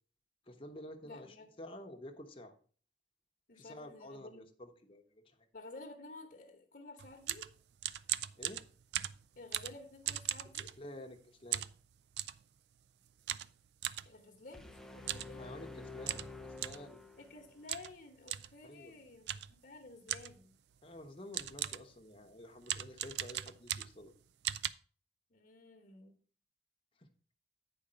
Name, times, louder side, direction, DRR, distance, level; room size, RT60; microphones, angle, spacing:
voice 1, 0.5-2.5 3.5-5.5 8.4-8.6 10.6-11.6 15.4-17.0 18.6-18.9 20.8-24.1 27.0-27.1, left 1 dB, 30° left, 4 dB, 1.0 m, -50 dB
voice 2, 1.0-1.5 3.5-4.4 5.5-7.5 9.4-10.7 14.0-15.5 17.2-20.5 25.3-26.1, left 2 dB, 55° left, 1 dB, 1.1 m, -52 dB
sound 1, 7.0-11.2 11.5-12.4 13.3-14.1 15.0-15.3 15.6-15.7 16.0-16.9 17.7-18.0 18.3-18.5 19.3-19.6 20.1-20.4 21.0-21.1 21.3-21.9 22.6-24.1 24.4-24.7, right 12 dB, 70° right, 0.3 m, -38 dB
sound 2, 14.5-17.6, left 3 dB, 5° left, 0.5 m, -49 dB
8.7 x 5.1 x 5.1 m, 0.43 s
head